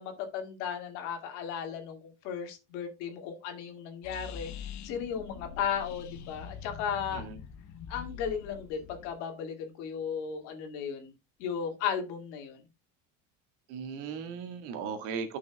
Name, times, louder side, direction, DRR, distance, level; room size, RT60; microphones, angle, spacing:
voice 1, 0.0-4.5 4.8-7.3 7.9-11.1 11.4-12.6, left 7 dB, 85° left, 2.2 m, -35 dB
sound 1, 4.0-9.1, left 7 dB, 55° left, 1.1 m, -44 dB
voice 2, 13.7-15.4, right 6 dB, 85° right, 1.8 m, -37 dB
12.0 x 6.1 x 2.3 m
cardioid pair, 130°, 34 cm